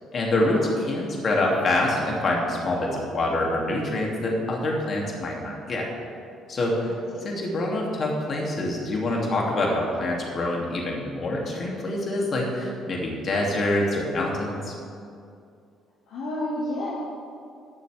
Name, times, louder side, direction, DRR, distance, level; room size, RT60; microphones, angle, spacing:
voice 1, 0.1-0.6 0.9-5.9 6.5-6.8 7.2-14.7, left 1 dB, 50° left, -1 dB, 2.7 m, -26 dB
voice 2, 6.9-7.4 16.1-16.9, left 1 dB, 70° left, -6 dB, 1.9 m, -31 dB
20.0 x 7.2 x 3.5 m, 2.4 s
hypercardioid pair, 55°, 0 cm